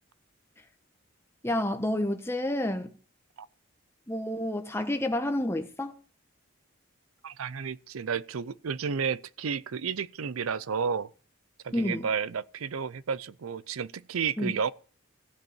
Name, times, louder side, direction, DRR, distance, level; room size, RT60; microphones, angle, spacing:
voice 1, 1.4-3.0 4.1-5.9 11.7-12.1 14.4-14.5, left 1 dB, 10° left, 1.1 m, -29 dB
voice 2, 7.2-11.1 11.6-14.7, right 6 dB, 90° right, 0.5 m, -32 dB
15.5 x 5.3 x 8.7 m
head